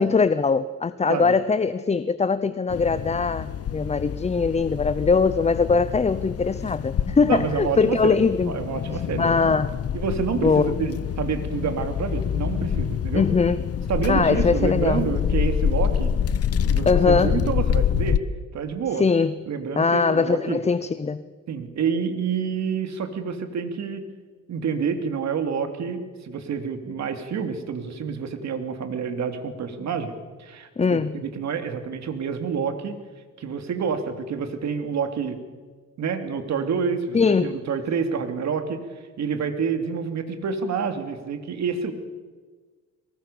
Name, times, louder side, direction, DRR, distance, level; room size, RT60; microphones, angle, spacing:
voice 1, 0.0-8.5 9.2-9.8 10.4-10.7 13.1-13.6 14.1-15.1 16.9-17.4 19.0-19.3 19.8-21.2 30.8-31.2 37.1-37.6, left 4 dB, 20° left, 0.7 m, -21 dB
sound 1, 2.7-18.2, left 8 dB, 50° left, 1.0 m, -26 dB
voice 2, 7.2-9.3 9.9-13.3 13.9-16.1 16.7-18.2 18.5-19.1 19.5-20.6 21.5-24.0 24.5-30.1 30.4-33.0 33.4-35.4 36.0-38.8 39.2-41.9, right 6 dB, 65° right, 2.9 m, -28 dB
23.0 x 20.5 x 7.0 m
cardioid pair, 90°, 30 cm